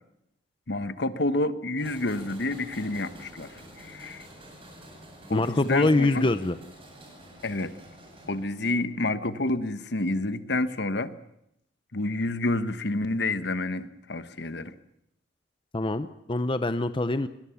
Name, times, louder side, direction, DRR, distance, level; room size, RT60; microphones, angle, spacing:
voice 1, 0.7-4.3 5.3-6.2 7.4-7.7 8.3-11.1 11.9-14.7, left 2 dB, 65° left, 12 dB, 1.2 m, -29 dB
sound 1, 1.8-8.9, right 1 dB, 30° right, 7.7 m, -48 dB
voice 2, 5.3-6.5 15.7-17.3, left 2 dB, 30° left, 11 dB, 0.7 m, -24 dB
22.5 x 21.0 x 7.1 m, 0.80 s
head